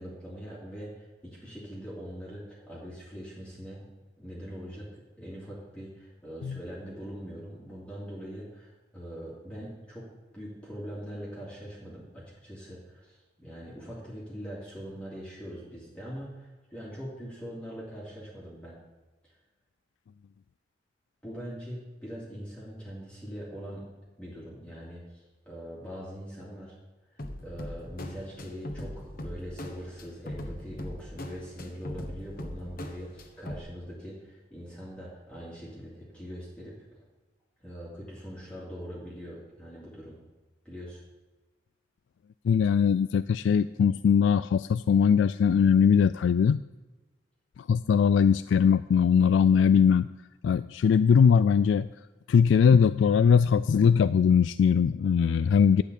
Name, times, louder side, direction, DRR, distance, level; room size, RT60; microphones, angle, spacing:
voice 1, 0.0-3.9 4.2-10.1 10.3-18.8 19.2-19.4 21.2-23.9 24.2-26.8 27.1-37.0 37.6-40.2 40.6-41.0, equal, 5° left, -7 dB, 2.8 m, -42 dB
sound 1, 27.2-33.6, left 1 dB, 50° left, 1.2 m, -40 dB
voice 2, 42.4-46.6 47.7-50.1 50.4-51.9 52.3-55.8, left 7 dB, 80° left, 14 dB, 0.3 m, -21 dB
12.0 x 5.8 x 8.4 m, 1.2 s
head